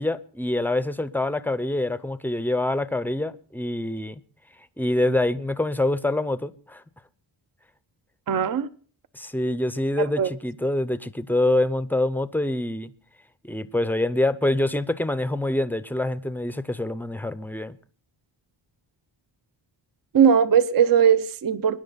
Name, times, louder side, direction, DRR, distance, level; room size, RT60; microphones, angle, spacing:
voice 1, 0.0-4.2 4.8-6.8 9.1-12.9 13.4-17.8, left 1 dB, 5° left, 0.6 m, -25 dB
voice 2, 8.3-8.7 10.0-10.3 20.1-21.8, right 8 dB, 50° right, 0.6 m, -19 dB
22.5 x 10.5 x 4.0 m
wide cardioid pair, 180°, 45 cm